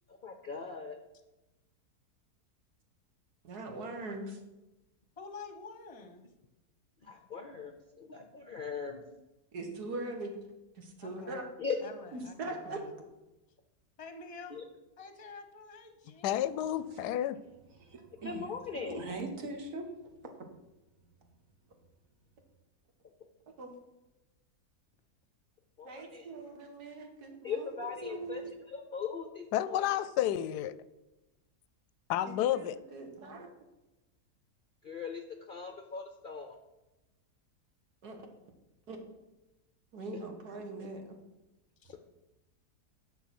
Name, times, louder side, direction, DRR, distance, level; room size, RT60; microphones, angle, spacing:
voice 1, 0.2-1.0 7.0-9.0 11.6-11.8 14.5-14.6 18.2-19.0 25.8-26.3 27.4-28.4 28.7-29.8 34.8-36.6, left 6 dB, 50° left, 5 dB, 0.6 m, -39 dB
voice 2, 3.4-4.4 9.5-10.3 10.8-11.5 12.1-12.8 23.6-23.7 25.8-28.5 32.2-33.5 38.0-38.2 38.9-39.0 39.9-41.2, right 2 dB, 80° right, 3 dB, 2.0 m, -41 dB
voice 3, 5.2-6.2 11.0-11.3 11.8-12.9 14.0-14.6 15.0-16.5 41.8-42.0, left 4 dB, 25° left, 7 dB, 0.9 m, -48 dB
voice 4, 16.2-17.4 29.5-30.8 32.1-32.8, left 11 dB, 90° left, 15 dB, 1.1 m, -30 dB
voice 5, 17.8-18.5 18.8-20.0, right 2 dB, 55° right, 4 dB, 1.8 m, -40 dB
9.4 x 6.2 x 6.0 m, 1.0 s
omnidirectional pair, 1.7 m